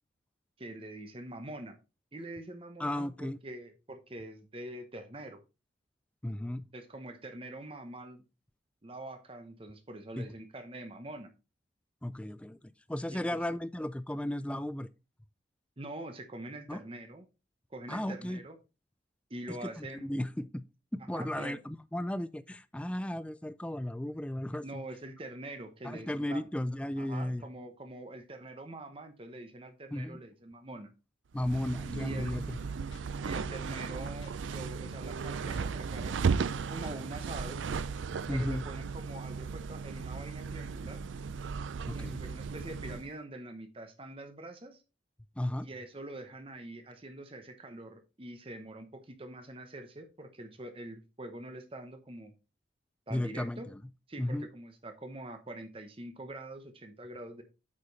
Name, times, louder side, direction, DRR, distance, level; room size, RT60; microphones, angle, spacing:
voice 1, 0.6-1.8 2.1-5.4 6.7-8.2 8.8-11.3 13.1-13.4 15.8-17.3 17.7-18.6 19.3-20.1 21.1-21.6 24.6-26.4 27.0-30.9 31.9-32.4 33.2-37.6 38.3-41.0 41.9-44.8 45.6-52.3 53.1-53.7 54.1-57.4, right 1 dB, 30° right, 0.9 m, -44 dB
voice 2, 2.8-3.4 6.2-6.7 10.2-10.3 12.0-12.6 12.9-14.9 16.7-16.8 17.9-18.4 19.5-20.6 20.9-24.8 25.8-27.5 29.9-30.2 31.3-32.6 38.3-38.6 41.9-42.2 45.4-45.7 53.1-53.8 54.2-54.5, left 1 dB, 5° left, 0.3 m, -35 dB
sound 1, 31.4-43.1, right 5 dB, 85° right, 0.4 m, -36 dB
sound 2, 32.3-32.6 32.9-34.6 34.9-35.2 35.5-37.4, left 1 dB, 85° left, 1.1 m, -52 dB
8.4 x 5.0 x 4.0 m
head